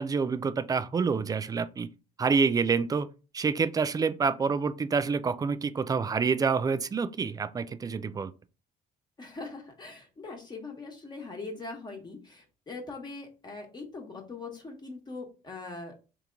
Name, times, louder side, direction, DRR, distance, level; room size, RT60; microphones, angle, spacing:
voice 1, 0.0-1.9 2.2-3.1 3.3-8.3, right 5 dB, 20° right, 0.3 m, -27 dB
voice 2, 9.2-15.9, left 3 dB, 25° left, 1.2 m, -41 dB
3.5 x 2.9 x 3.8 m
cardioid pair, 110°, 17 cm